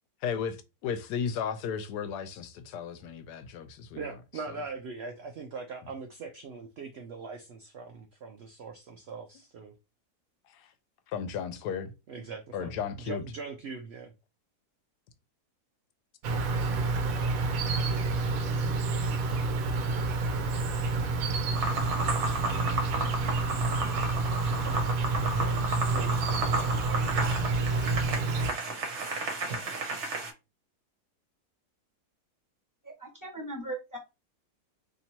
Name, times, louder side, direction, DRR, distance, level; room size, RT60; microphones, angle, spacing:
voice 1, 0.2-4.0 10.5-10.7 11.1-11.9 12.5-13.2, left 7 dB, 85° left, 1.2 m, -34 dB
voice 2, 4.0-9.8 12.1-14.1 24.6-27.1, right 4 dB, 85° right, 0.5 m, -41 dB
Insect, 16.2-28.5, right 3 dB, 70° right, 1.0 m, -29 dB
sound 1, 21.5-30.3, right 2 dB, 50° right, 1.1 m, -33 dB
voice 3, 32.8-34.0, right 2 dB, 15° right, 1.2 m, -38 dB
2.9 x 2.7 x 4.3 m
omnidirectional pair, 1.7 m